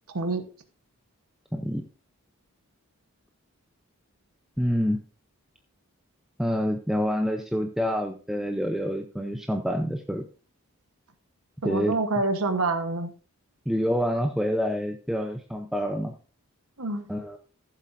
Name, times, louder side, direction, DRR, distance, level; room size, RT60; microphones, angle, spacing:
voice 1, 1.5-1.8 4.6-5.0 6.4-10.2 11.6-12.0 13.7-16.1 17.1-17.4, equal, ahead, 4 dB, 0.6 m, -27 dB
voice 2, 11.6-13.1 16.8-17.1, right 3 dB, 80° right, 8 dB, 1.2 m, -26 dB
14.5 x 7.5 x 2.6 m, 0.36 s
head